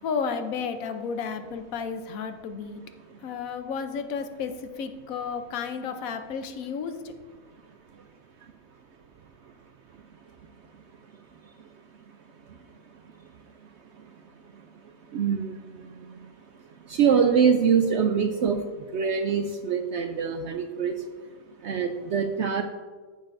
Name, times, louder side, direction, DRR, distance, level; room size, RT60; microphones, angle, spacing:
voice 1, 0.0-2.8 3.2-7.1, left 6 dB, 70° left, 8 dB, 1.1 m, -32 dB
voice 2, 15.1-15.5 16.9-18.6 18.9-20.9 21.6-22.6, right 6 dB, 65° right, 6 dB, 0.7 m, -23 dB
14.5 x 6.5 x 2.6 m, 1.5 s
omnidirectional pair, 1.6 m